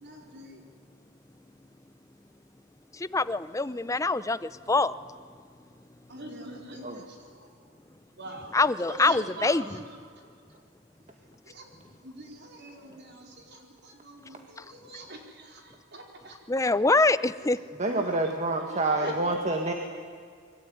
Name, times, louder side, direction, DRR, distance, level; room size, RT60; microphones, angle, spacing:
voice 1, 0.0-0.6 6.1-6.8 8.2-8.5 8.9-9.6 11.6-11.7 12.0-13.3 14.0-15.2 15.9-16.3 17.9-18.2 18.7-19.4, right 1 dB, 50° right, 1 dB, 4.6 m, -42 dB
voice 2, 2.9-5.0 8.5-9.8 14.6-14.7 16.5-17.6, left 3 dB, 15° left, 15 dB, 0.6 m, -25 dB
voice 3, 17.8-19.7, right 2 dB, 35° right, 3 dB, 1.7 m, -28 dB
25.0 x 22.5 x 9.4 m, 2.1 s
head